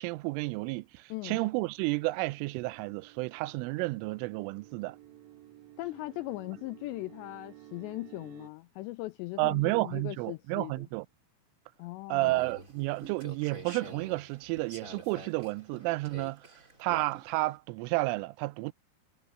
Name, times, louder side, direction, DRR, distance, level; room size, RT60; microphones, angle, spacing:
voice 1, 0.0-5.0 9.4-11.1 12.1-16.5 16.8-18.7, right 21 dB, 90° right, 3.1 m, -31 dB
sound 1, 1.1-8.5, right 13 dB, 70° right, 1.7 m, -54 dB
voice 2, 5.8-10.7 11.8-12.4, left 21 dB, 85° left, 2.5 m, -39 dB
sound 2, 12.2-17.6, right 2 dB, 15° right, 4.8 m, -47 dB
omnidirectional pair, 5.6 m